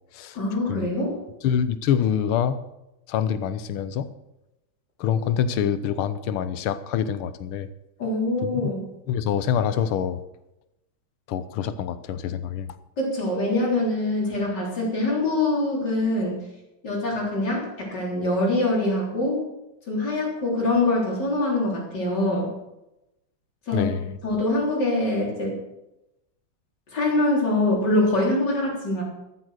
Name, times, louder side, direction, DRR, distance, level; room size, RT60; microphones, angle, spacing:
voice 1, 0.3-1.2 8.0-8.8 13.0-16.4 16.8-19.4 19.9-22.5 23.7-23.9 24.2-25.6 26.9-29.0, left 2 dB, 55° left, -3 dB, 4.3 m, -24 dB
voice 2, 1.4-2.6 3.1-4.1 5.0-7.7 8.4-8.5 9.1-10.2 11.3-12.8 23.7-24.2, left 8 dB, 85° left, 13 dB, 1.7 m, -25 dB
13.0 x 8.4 x 6.5 m, 0.92 s
omnidirectional pair, 2.3 m